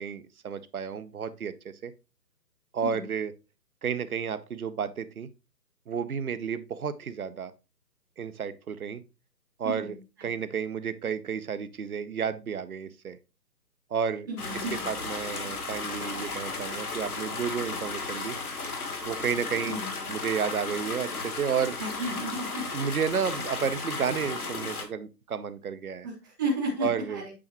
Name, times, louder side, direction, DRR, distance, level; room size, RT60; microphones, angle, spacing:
voice 1, 0.0-1.9 2.7-3.3 3.8-5.3 5.9-7.5 8.2-9.0 9.6-13.2 13.9-14.3 14.5-18.4 19.0-19.8 20.1-21.8 22.7-26.1 26.8-27.2, right 7 dB, 60° right, 0.9 m, -31 dB
voice 2, 14.3-14.8 19.6-20.0 21.8-22.6 26.0-27.3, right 1 dB, 10° right, 0.8 m, -33 dB
sound 1, 14.4-24.9, left 3 dB, 65° left, 1.9 m, -35 dB
8.6 x 5.6 x 3.0 m
figure-of-eight pair, 145°, 49 cm